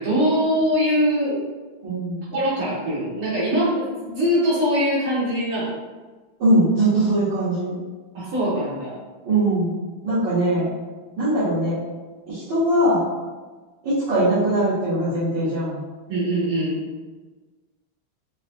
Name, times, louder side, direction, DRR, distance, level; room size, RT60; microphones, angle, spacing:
voice 1, 0.0-1.4 2.3-5.7 8.1-9.0 16.1-16.8, equal, 75° right, -9 dB, 2.4 m, -22 dB
voice 2, 1.8-2.2 6.4-7.7 9.3-9.7 10.0-10.7 11.2-11.8 12.3-13.0 13.8-15.8, right 1 dB, 60° right, -15 dB, 2.2 m, -21 dB
6.2 x 2.5 x 2.6 m, 1.3 s
omnidirectional pair, 2.3 m